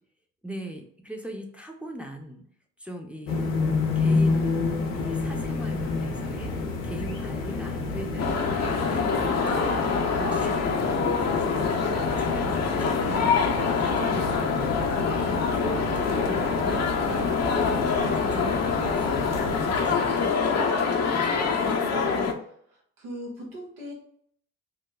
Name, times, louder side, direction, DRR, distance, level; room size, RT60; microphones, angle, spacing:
voice 1, 0.4-2.4 2.8-3.5 3.9-4.6 4.9-8.4 8.9-13.4 13.8-14.7 15.2-20.3 21.0-22.0, right 1 dB, 5° right, 1 dB, 0.7 m, -39 dB
sound 1, 3.3-20.3, left 3 dB, 85° left, 0.6 m, -30 dB
sound 2, 8.2-22.3, left 5 dB, 40° left, 0.6 m, -25 dB
voice 2, 22.7-23.9, equal, 85° right, -2 dB, 1.0 m, -40 dB
3.0 x 2.2 x 3.5 m, 0.65 s
hypercardioid pair, 45°, 38 cm